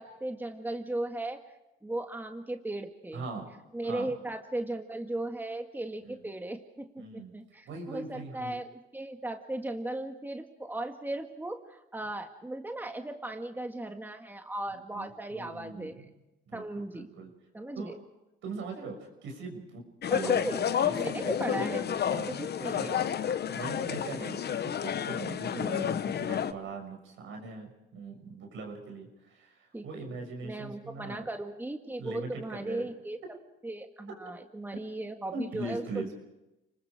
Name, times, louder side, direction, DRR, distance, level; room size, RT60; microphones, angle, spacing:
voice 1, 0.0-1.4 1.8-3.3 3.7-16.0 16.5-17.1 17.5-18.0 20.1-23.0 25.5-26.0 29.7-29.8 30.4-33.2 33.6-36.1, right 1 dB, 10° right, 5 dB, 1.8 m, -37 dB
voice 2, 3.1-3.5 3.8-4.1 6.0-6.1 7.0-7.3 7.7-8.5 14.7-16.1 16.5-17.3 17.8-17.9 18.4-19.8 20.1-20.5 21.0-21.7 22.1-22.3 22.7-22.9 23.5-25.9 26.2-31.3 32.0-32.9 35.3-36.1, right 3 dB, 80° right, 3 dB, 6.0 m, -41 dB
sound 1, 20.0-26.5, left 8 dB, 55° left, 1.1 m, -30 dB
29.5 x 20.5 x 5.0 m, 0.95 s
cardioid pair, 90°, 20 cm